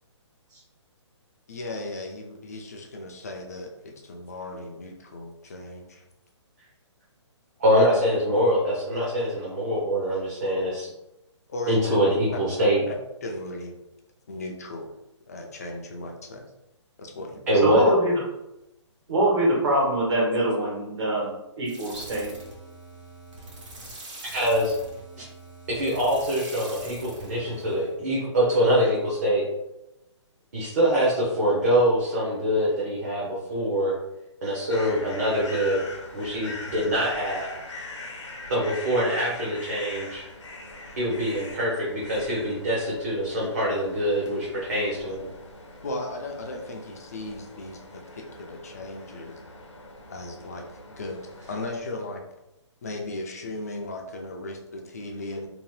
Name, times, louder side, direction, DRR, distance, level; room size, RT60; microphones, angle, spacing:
voice 1, 1.5-6.0 11.5-12.0 12.3-13.7 14.3-14.9 15.3-16.4 17.0-17.4 45.8-49.4 50.1-51.2 51.5-52.2 52.8-55.5, left 2 dB, 30° left, 2 dB, 0.4 m, -36 dB
voice 2, 7.6-10.9 11.7-12.8 17.5-17.9 24.2-24.8 25.7-29.4 30.5-33.9 34.4-35.8 36.1-37.5 38.5-40.2 41.0-45.3, equal, 35° right, -6 dB, 0.7 m, -24 dB
voice 3, 17.6-18.1 19.1-21.3 21.6-22.3, right 1 dB, 65° right, -4 dB, 1.3 m, -23 dB
sound 1, 21.6-28.0, right 2 dB, 85° right, 1.3 m, -43 dB
sound 2, 34.7-51.8, left 2 dB, 80° left, 0.8 m, -42 dB
2.8 x 2.0 x 3.1 m, 0.91 s
hypercardioid pair, 175°, 15 cm